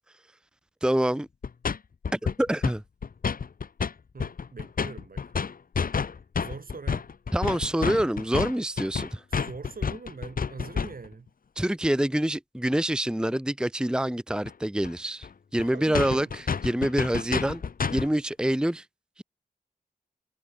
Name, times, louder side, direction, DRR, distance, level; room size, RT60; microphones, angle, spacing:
voice 1, 0.8-1.3 2.1-2.8 7.3-9.2 11.6-17.6 17.9-18.8 19.2-19.3, right 1 dB, 5° right, 0.9 m, -26 dB
sound 1, 1.4-1.8 2.0-2.8 3.0-3.9 4.2-11.1 14.4-14.5 14.8-14.9 15.2-15.3 15.6-15.7 15.9-18.1, left 6 dB, 60° left, 0.9 m, -29 dB
voice 2, 4.1-5.2 6.4-7.1 9.3-11.3 15.6-16.3, right 4 dB, 60° right, 2.9 m, -42 dB
cardioid pair, 40°, 16 cm